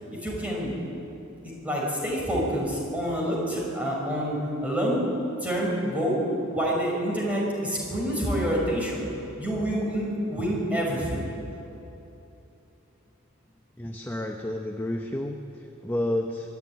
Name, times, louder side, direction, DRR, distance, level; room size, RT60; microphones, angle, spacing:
voice 1, 0.1-0.7 1.4-5.0 5.4-6.2 6.5-9.0 9.4-11.3, equal, 5° right, -3 dB, 5.5 m, -27 dB
voice 2, 13.8-16.6, left 1 dB, 10° left, 2 dB, 0.9 m, -31 dB
23.5 x 12.0 x 9.5 m, 2.9 s
head